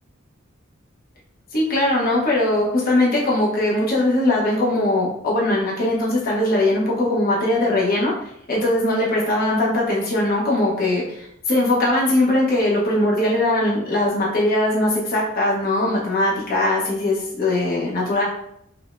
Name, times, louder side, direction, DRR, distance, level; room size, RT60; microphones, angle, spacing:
voice 1, 1.5-8.1 8.5-18.2, left 1 dB, 50° left, -5 dB, 0.9 m, -20 dB
4.9 x 2.1 x 2.5 m, 0.73 s
head